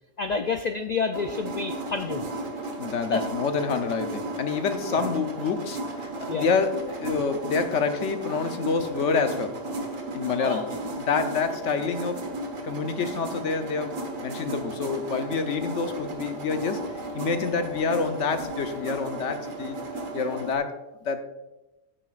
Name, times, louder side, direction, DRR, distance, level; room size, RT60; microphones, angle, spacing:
voice 1, 0.2-2.4 3.1-3.2 4.9-5.0 6.3-6.5 10.4-10.6, left 5 dB, 90° left, 8 dB, 0.3 m, -29 dB
sound 1, 1.1-20.5, right 2 dB, 80° right, 1.7 m, -34 dB
voice 2, 2.8-9.6 10.1-12.3 12.6-16.8 17.1-19.8 20.1-21.2, left 5 dB, 65° left, 8 dB, 1.1 m, -28 dB
14.5 x 9.9 x 2.4 m, 1.0 s
omnidirectional pair, 1.3 m